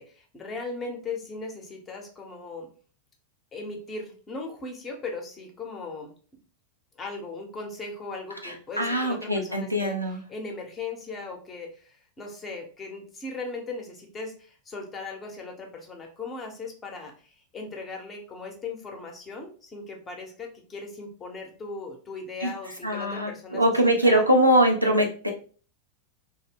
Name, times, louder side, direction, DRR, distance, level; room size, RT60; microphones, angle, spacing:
voice 1, 0.0-2.7 3.5-6.1 7.0-24.2, left 3 dB, 20° left, 2 dB, 0.7 m, -38 dB
voice 2, 8.4-10.2 22.4-22.5 22.8-25.3, right 1 dB, 90° right, 1 dB, 0.5 m, -22 dB
2.3 x 2.0 x 3.4 m, 0.40 s
figure-of-eight pair, 90°, 0 cm